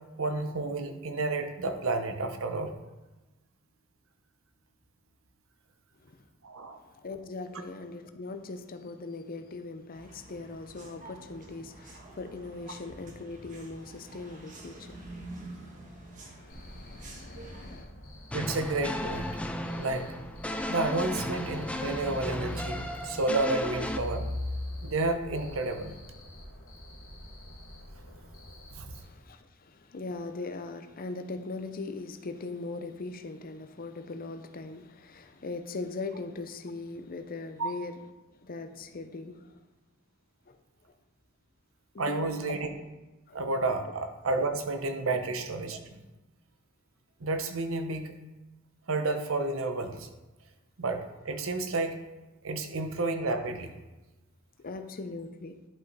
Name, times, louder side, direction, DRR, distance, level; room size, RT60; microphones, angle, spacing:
voice 1, 0.2-2.7 6.4-6.8 18.3-19.4 19.8-20.1 20.7-24.3 24.8-25.9 28.8-28.9 37.6-37.7 42.0-42.7 43.3-46.0 47.2-48.1 48.9-50.1 50.8-51.9 52.4-53.7, right 2 dB, 85° right, 0.9 m, -31 dB
voice 2, 6.9-17.9 29.0-38.0 38.4-39.6 40.5-40.6 41.9-42.6 43.3-43.4 43.8-43.9 45.1-45.2 54.6-55.6, left 3 dB, 45° left, 0.7 m, -40 dB
sound 1, 9.9-17.8, right 2 dB, 40° right, 1.3 m, -48 dB
Cricket, 16.5-29.0, equal, 80° left, 2.1 m, -48 dB
sound 2, 18.3-24.0, left 1 dB, 5° left, 0.5 m, -35 dB
11.0 x 5.2 x 4.1 m
head